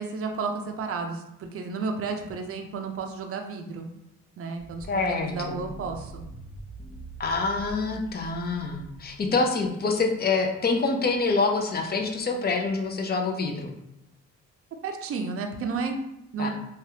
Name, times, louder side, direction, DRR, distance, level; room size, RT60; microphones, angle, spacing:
voice 1, 0.0-3.9 4.4-6.2 14.8-16.0 16.3-16.5, right 4 dB, 50° right, 4 dB, 0.5 m, -32 dB
sound 1, 4.6-9.2, right 2 dB, ahead, 0.9 m, -43 dB
voice 2, 4.9-5.6 7.2-13.7 16.4-16.5, left 3 dB, 30° left, 3 dB, 0.6 m, -26 dB
3.1 x 2.4 x 2.8 m, 0.85 s
cardioid pair, 90°, 30 cm